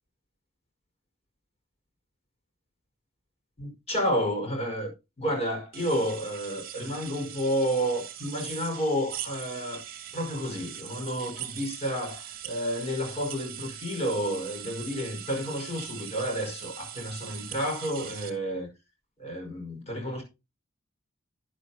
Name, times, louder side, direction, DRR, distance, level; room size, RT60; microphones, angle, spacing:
voice 1, 3.6-4.9 5.2-9.8 10.1-18.7 19.2-20.2, equal, 30° left, 5.1 m, -30 dB
sound 1, 5.7-18.3, right 10 dB, 45° right, 2.1 m, -41 dB
11.5 x 10.0 x 2.8 m
head